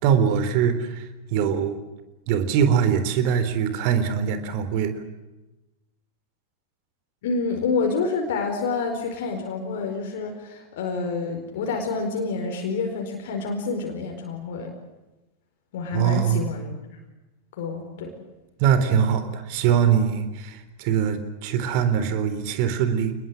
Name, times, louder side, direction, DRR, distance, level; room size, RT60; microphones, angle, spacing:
voice 1, 0.0-1.8 2.3-5.0 15.9-16.5 18.6-23.1, right 8 dB, 45° right, 10 dB, 3.8 m, -22 dB
voice 2, 7.2-14.7 15.7-16.8 17.5-18.2, left 4 dB, 55° left, 3 dB, 4.7 m, -28 dB
29.0 x 21.0 x 7.7 m, 1.1 s
figure-of-eight pair, 90°, 0 cm